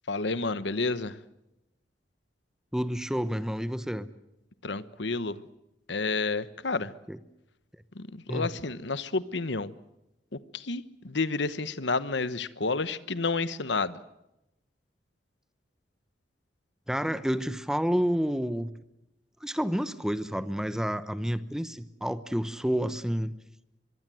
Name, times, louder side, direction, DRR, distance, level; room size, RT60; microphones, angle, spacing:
voice 1, 0.1-1.2 4.6-5.4 5.9-6.9 7.9-9.7 10.5-14.0, left 3 dB, 70° left, 15 dB, 1.1 m, -30 dB
voice 2, 2.7-4.1 7.1-7.2 8.3-8.5 16.9-18.7 19.4-23.3, equal, 5° right, 13 dB, 0.9 m, -29 dB
25.0 x 23.0 x 7.7 m, 0.89 s
head